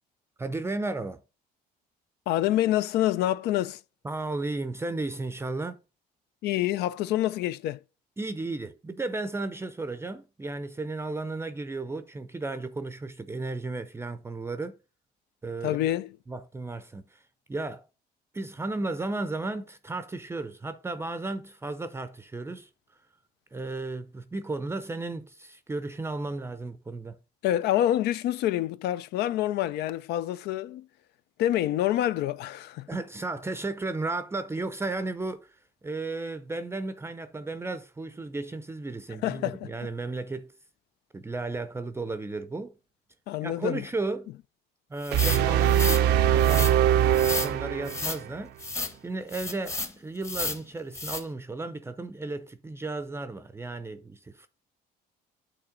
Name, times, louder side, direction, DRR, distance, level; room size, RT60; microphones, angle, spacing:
voice 1, 0.4-1.2 4.0-5.8 8.2-14.8 15.4-15.8 16.3-17.2 17.5-17.9 18.3-22.7 23.5-27.2 32.9-35.5 35.8-40.5 41.1-42.8 43.4-44.3 44.9-46.7 47.0-48.6 49.0-54.5, right 2 dB, 15° right, 0.5 m, -34 dB
voice 2, 2.3-3.8 6.4-7.8 15.6-16.1 27.4-30.9 31.4-32.9 39.2-39.7 43.3-43.8, left 13 dB, 75° left, 0.4 m, -27 dB
sound 1, 45.0-46.0 46.4-46.7 47.1-47.5 47.9-48.2 48.6-48.9 49.3-49.9 50.2-50.6 50.9-51.2, left 2 dB, 15° left, 0.9 m, -32 dB
sound 2, 45.1-48.3, right 10 dB, 85° right, 0.5 m, -22 dB
8.5 x 3.3 x 3.7 m
cardioid pair, 110°, 17 cm